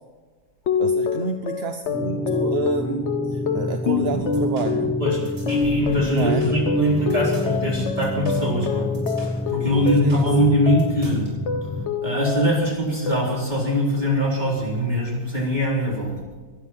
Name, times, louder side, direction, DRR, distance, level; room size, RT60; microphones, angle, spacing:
sound 1, 0.7-11.1 11.5-12.7 13.1-13.6, left 5 dB, 50° left, 1.0 m, -26 dB
voice 1, 0.8-4.9 5.2-5.3 6.1-6.5 9.7-10.3, right 5 dB, 50° right, 7 dB, 0.9 m, -29 dB
sound 2, 1.9-11.9, left 1 dB, 15° left, 0.3 m, -29 dB
sound 3, 4.1-11.3, equal, 80° right, 6.6 m, -39 dB
voice 2, 5.0-8.9 9.2-11.3 11.6-11.7 12.0-16.1, equal, 25° right, -4 dB, 4.2 m, -22 dB
22.0 x 9.4 x 5.6 m, 1.4 s
omnidirectional pair, 1.7 m